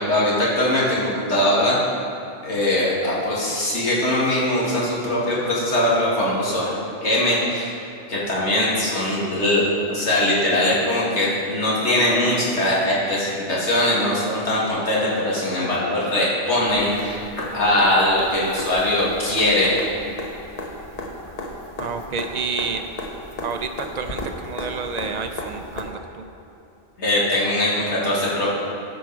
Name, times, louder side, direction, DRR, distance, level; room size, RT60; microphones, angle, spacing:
voice 1, 0.0-1.8 2.4-6.7 7.0-7.8 8.1-17.2 17.5-19.7 27.0-28.5, left 1 dB, 75° left, -6 dB, 2.4 m, -21 dB
sound 1, 16.7-25.8 27.8-27.9, left 1 dB, 35° left, 1.0 m, -34 dB
voice 2, 21.8-22.8 23.4-26.3, right 5 dB, 60° right, 7 dB, 0.4 m, -29 dB
12.5 x 5.4 x 4.6 m, 2.8 s
omnidirectional pair, 1.2 m